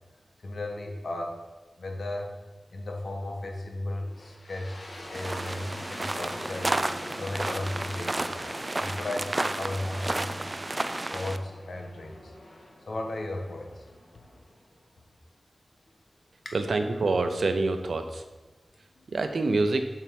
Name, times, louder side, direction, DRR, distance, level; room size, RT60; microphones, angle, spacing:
voice 1, 0.4-1.4 1.8-2.4 2.7-4.8 5.1-6.8 7.2-8.5 8.8-10.4 11.1-12.3 12.9-13.8 14.1-14.2 16.4-16.5 19.0-19.2, left 1 dB, 70° left, 1 dB, 1.4 m, -35 dB
sound 1, 4.1-15.0, left 1 dB, 55° left, 2.0 m, -45 dB
sound 2, 5.1-11.4, right 2 dB, 30° right, 0.4 m, -32 dB
voice 2, 16.5-18.2 19.1-19.9, right 3 dB, 70° right, 7 dB, 0.7 m, -26 dB
7.4 x 5.7 x 5.4 m, 1.2 s
wide cardioid pair, 80°, 0 cm